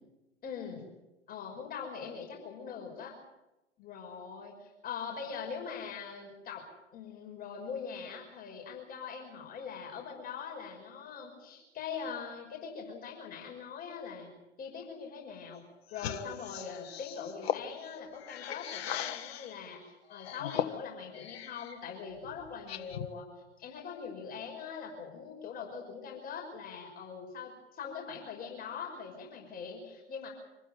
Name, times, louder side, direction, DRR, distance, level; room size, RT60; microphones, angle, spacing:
voice 1, 0.4-0.9 1.3-3.1 3.8-14.3 14.6-15.6 15.9-23.3 23.6-30.3, left 6 dB, 25° left, 0 dB, 5.8 m, -42 dB
sound 1, 15.9-19.6 20.1-21.8 22.2-23.2, left 10 dB, 60° left, 1.7 m, -39 dB
26.5 x 15.5 x 9.2 m, 0.97 s
figure-of-eight pair, 105°, 35 cm